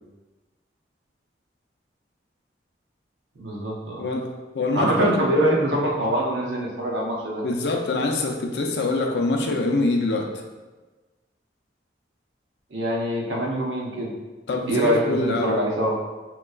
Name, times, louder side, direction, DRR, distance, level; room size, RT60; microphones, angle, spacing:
voice 1, 3.4-4.0 4.7-7.4 12.7-14.1 14.7-15.9, right 1 dB, 85° right, -3 dB, 0.8 m, -24 dB
voice 2, 4.5-5.2 7.4-10.3 14.5-15.6, left 2 dB, 70° left, 3 dB, 0.4 m, -24 dB
3.6 x 2.9 x 2.3 m, 1.2 s
head